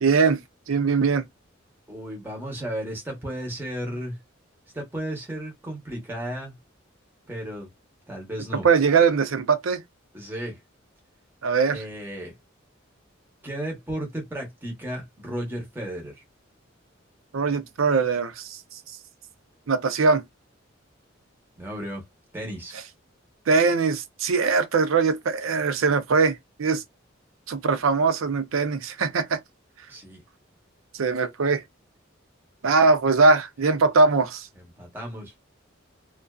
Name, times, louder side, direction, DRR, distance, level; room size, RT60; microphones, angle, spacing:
voice 1, 0.0-0.4 0.7-1.2 8.6-9.8 11.4-11.8 17.3-18.6 19.7-20.2 23.5-26.8 27.5-29.4 30.9-31.6 32.6-34.5, right 4 dB, 85° right, 0.5 m, -21 dB
voice 2, 1.9-4.2 4.7-6.5 7.3-7.7 8.1-8.7 10.1-10.6 11.7-12.3 13.4-16.2 21.6-22.0 22.3-22.7 29.9-30.2 34.6-35.3, right 1 dB, 10° right, 0.9 m, -34 dB
2.4 x 2.2 x 2.3 m
head